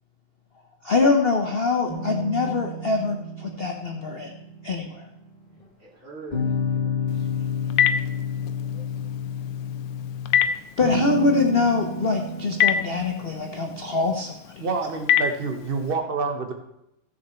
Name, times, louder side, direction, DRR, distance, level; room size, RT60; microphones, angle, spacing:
voice 1, 0.8-4.3 4.6-5.1 10.8-14.6, left 3 dB, 55° left, 2 dB, 0.6 m, -24 dB
sound 1, 1.9-5.6 6.3-10.4 10.8-14.2, left 3 dB, 20° left, 2.2 m, -30 dB
voice 2, 5.8-7.5 8.6-9.2, right 3 dB, 35° right, -6 dB, 3.8 m, -45 dB
Telephone, 7.1-15.9, left 9 dB, 75° left, 1.5 m, -28 dB
voice 3, 14.6-16.5, right 4 dB, 60° right, 5 dB, 0.5 m, -27 dB
15.5 x 6.8 x 4.3 m, 0.86 s
omnidirectional pair, 2.4 m